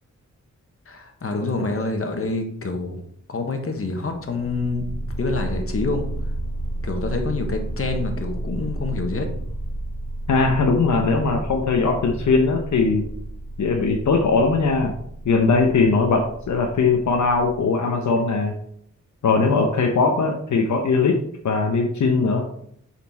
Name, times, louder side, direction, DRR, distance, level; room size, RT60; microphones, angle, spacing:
voice 1, 0.9-3.0 3.3-6.1 6.8-9.3, left 3 dB, 45° left, 5 dB, 1.3 m, -27 dB
sound 1, 4.2-17.6, right 1 dB, 20° left, 1.5 m, -32 dB
voice 2, 10.3-13.0 13.6-14.9 15.2-18.5 19.2-21.2 21.4-22.5, left 4 dB, 70° left, 2 dB, 0.9 m, -20 dB
7.2 x 4.4 x 4.1 m, 0.68 s
cardioid pair, 70°, 31 cm